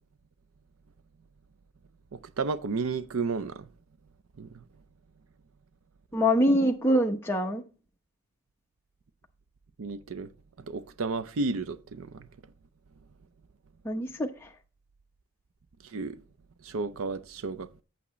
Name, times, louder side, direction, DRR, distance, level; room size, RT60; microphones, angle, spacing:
voice 1, 2.1-3.7 4.4-4.6 9.8-10.3 10.6-12.3 15.8-16.2 16.6-17.8, right 4 dB, 75° right, 0.5 m, -33 dB
voice 2, 6.1-7.6 13.8-14.5, equal, 10° left, 0.8 m, -24 dB
8.4 x 8.4 x 3.1 m
head